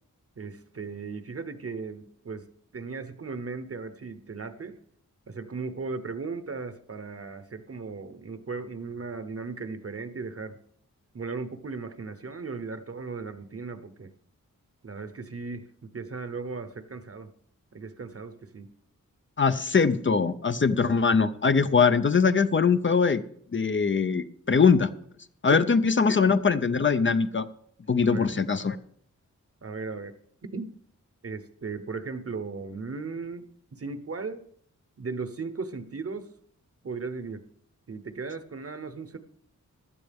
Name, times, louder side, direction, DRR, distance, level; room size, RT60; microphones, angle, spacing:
voice 1, 0.4-2.5 2.7-4.8 5.3-10.6 11.1-14.1 14.8-17.3 17.7-18.7 25.5-25.7 28.1-28.3 29.6-30.1 30.5-30.7 31.2-33.5 33.7-34.4 35.0-36.3 36.8-37.4 37.9-39.2, right 4 dB, 50° right, 10 dB, 1.0 m, -36 dB
voice 2, 19.4-23.2 23.5-24.9 25.4-27.5 27.9-28.8, left 5 dB, 40° left, 11 dB, 0.6 m, -22 dB
15.5 x 12.0 x 3.6 m, 0.64 s
wide cardioid pair, 105°, 31 cm